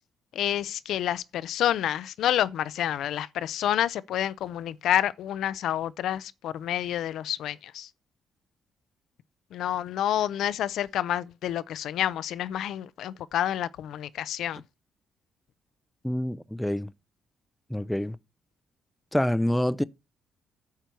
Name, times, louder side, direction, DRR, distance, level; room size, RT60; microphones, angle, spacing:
voice 1, 0.3-7.9 9.5-14.6, left 11 dB, 75° left, 0.5 m, -28 dB
voice 2, 16.0-16.9 17.7-18.2 19.1-19.8, left 1 dB, 5° left, 0.4 m, -26 dB
10.5 x 6.8 x 4.6 m
cardioid pair, 90°, 0 cm